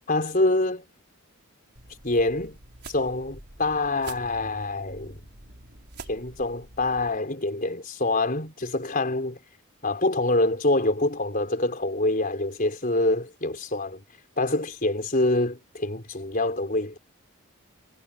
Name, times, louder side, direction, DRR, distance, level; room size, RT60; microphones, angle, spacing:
voice 1, 0.1-0.8 2.0-2.6 2.9-5.2 6.1-9.4 9.8-14.0 14.4-17.0, left 2 dB, 40° left, 4.3 m, -25 dB
sound 1, 1.7-7.2, right 3 dB, 55° right, 5.2 m, -46 dB
head